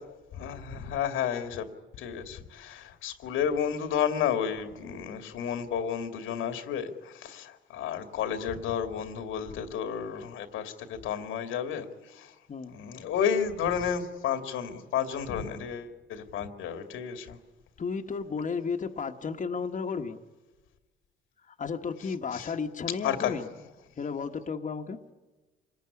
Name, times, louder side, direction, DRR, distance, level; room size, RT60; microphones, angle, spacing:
voice 1, 0.0-1.6 2.0-12.3 12.7-17.4 22.3-22.5 23.0-23.4, left 8 dB, 90° left, 7 dB, 2.4 m, -32 dB
voice 2, 17.8-20.2 21.5-23.5 24.0-25.0, left 5 dB, 40° left, 4 dB, 1.5 m, -33 dB
26.5 x 20.5 x 9.9 m, 1.2 s
cardioid pair, 90°, 20 cm